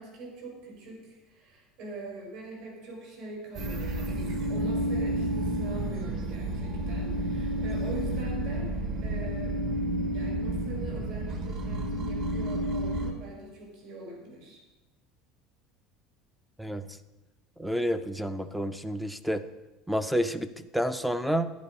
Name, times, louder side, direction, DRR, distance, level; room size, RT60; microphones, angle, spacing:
voice 1, 0.0-9.6 10.1-14.6, right 2 dB, 60° right, -1 dB, 5.5 m, -43 dB
sound 1, 3.5-13.1, right 1 dB, 40° right, 1.4 m, -30 dB
voice 2, 17.6-19.4 19.9-21.5, equal, ahead, 12 dB, 0.4 m, -29 dB
11.5 x 10.5 x 5.4 m, 1.1 s
cardioid pair, 170°, 0 cm